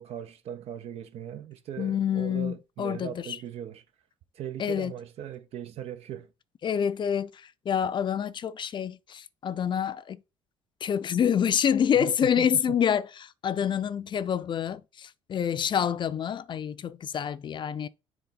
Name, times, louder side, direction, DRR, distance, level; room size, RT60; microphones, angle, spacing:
voice 1, 0.0-3.8 4.3-6.3 12.0-12.8, right 10 dB, 65° right, 0.6 m, -39 dB
voice 2, 1.8-3.4 4.6-4.9 6.6-10.2 10.8-17.9, left 8 dB, 45° left, 0.5 m, -27 dB
6.9 x 4.0 x 3.9 m
supercardioid pair, 80°, 11 cm